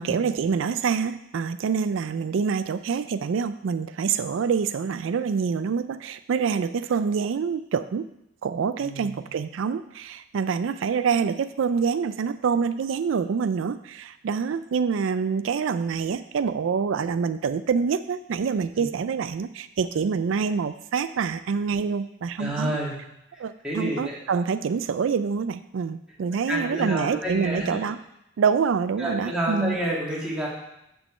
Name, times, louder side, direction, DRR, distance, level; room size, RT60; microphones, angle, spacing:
voice 1, 0.0-8.1 8.4-22.8 23.4-28.0 28.4-29.8, right 6 dB, 80° right, 12 dB, 0.4 m, -26 dB
voice 2, 8.8-9.2 18.8-18.9 22.4-23.0 23.6-24.2 26.5-27.8 29.0-30.5, equal, 5° right, -5 dB, 2.2 m, -29 dB
6.4 x 6.1 x 7.4 m, 0.82 s
head